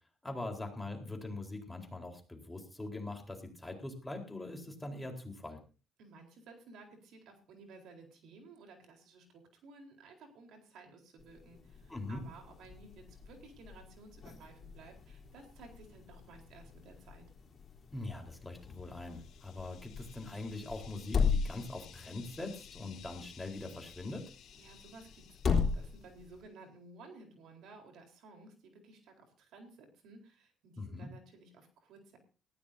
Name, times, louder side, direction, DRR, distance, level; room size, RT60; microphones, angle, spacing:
voice 1, 0.2-5.6 11.9-12.2 17.9-24.3 30.8-31.1, left 2 dB, 10° left, 2 dB, 4.2 m, -42 dB
voice 2, 6.0-17.3 24.6-32.2, right 3 dB, 75° right, 3 dB, 4.1 m, -55 dB
sound 1, 11.2-26.4, left 5 dB, 40° left, 4.0 m, -39 dB
sound 2, 18.5-26.3, left 10 dB, 70° left, 2.8 m, -57 dB
19.0 x 15.0 x 2.8 m, 0.35 s
cardioid pair, 100°, 0 cm